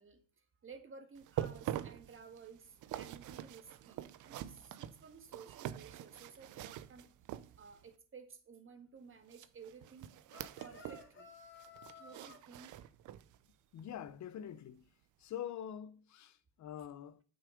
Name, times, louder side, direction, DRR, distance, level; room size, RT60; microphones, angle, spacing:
voice 1, 0.0-7.1 7.6-10.1 10.6-11.3 12.0-12.9, right 5 dB, 45° right, 1.8 m, -55 dB
sound 1, 1.2-7.9 9.3-11.1 11.4-13.4 13.8-13.9 14.5-14.6, right 12 dB, 80° right, 0.6 m, -45 dB
sound 2, 10.3-12.4, left 3 dB, 40° left, 2.2 m, -55 dB
voice 2, 13.7-14.8 15.2-17.2, left 10 dB, 70° left, 0.8 m, -45 dB
8.6 x 6.3 x 5.0 m
cardioid pair, 90°, 30 cm